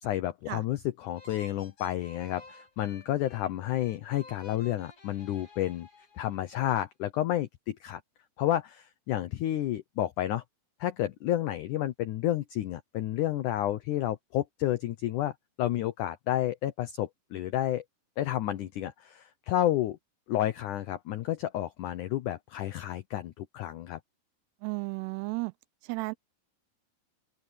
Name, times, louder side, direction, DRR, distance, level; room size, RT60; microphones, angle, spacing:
voice 1, 0.0-5.9 6.2-8.0 8.4-10.4 10.8-15.3 15.6-17.8 18.2-20.0 20.3-24.0, left 13 dB, 75° left, 1.8 m, -30 dB
sound 1, 1.1-6.6, left 2 dB, 35° left, 7.0 m, -53 dB
voice 2, 24.6-25.5 25.8-26.1, right 26 dB, 85° right, 2.7 m, -33 dB
open air
omnidirectional pair, 4.7 m